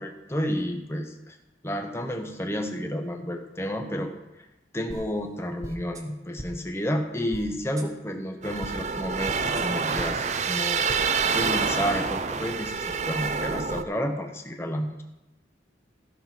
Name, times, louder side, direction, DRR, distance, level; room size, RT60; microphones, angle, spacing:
voice 1, 0.0-1.4 1.6-4.1 4.7-10.9 11.3-15.0, equal, 15° left, 4 dB, 0.9 m, -31 dB
sound 1, 4.9-5.0 5.6-6.0 6.4-6.5 7.3-7.4 7.8-7.9 8.6-8.7 9.3-9.6 10.0-10.1 10.9-11.0 11.3-12.3, right 1 dB, 20° right, 0.9 m, -39 dB
sound 2, 8.4-13.8, right 5 dB, 40° right, 0.5 m, -27 dB
14.5 x 5.6 x 5.9 m, 0.94 s
head